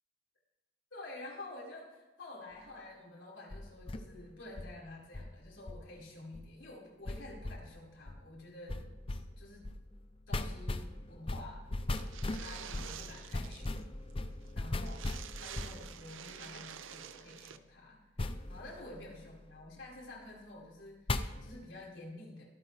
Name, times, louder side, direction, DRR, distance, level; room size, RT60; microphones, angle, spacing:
voice 1, 0.9-8.8 9.1-9.7 10.3-11.6 12.3-13.8 14.5-15.1 15.4-18.0 18.5-22.4, left 2 dB, 65° left, -4 dB, 4.9 m, -49 dB
sound 1, 3.5-4.7 5.1-5.9 6.3-6.5 7.1-7.7 8.1-8.2 8.7-16.3 18.2-19.6 21.1-21.6, left 2 dB, 25° left, 0.5 m, -39 dB
sound 2, 11.9-13.8 14.1-14.2 14.4-14.5 14.8-17.6, right 9 dB, 75° right, 0.6 m, -48 dB
24.5 x 9.0 x 3.4 m, 1.1 s
head